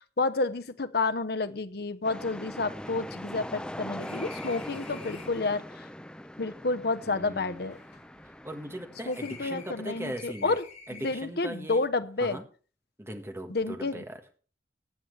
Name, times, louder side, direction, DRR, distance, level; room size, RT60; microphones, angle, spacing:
voice 1, 0.2-5.8 6.4-7.8 9.1-12.4 13.5-14.0, left 3 dB, 60° left, 13 dB, 0.8 m, -30 dB
sound 1, 1.4-1.5 1.7-1.8 2.2-5.5 6.3-8.7 9.1-11.4, left 5 dB, 45° left, 3.8 m, -51 dB
sound 2, 2.0-10.2, left 1 dB, 5° left, 0.5 m, -42 dB
voice 2, 7.0-7.6 8.4-10.6 10.9-11.8 12.2-12.4 13.0-14.1, right 1 dB, 15° right, 5 dB, 1.4 m, -39 dB
17.0 x 8.8 x 3.3 m, 0.39 s
head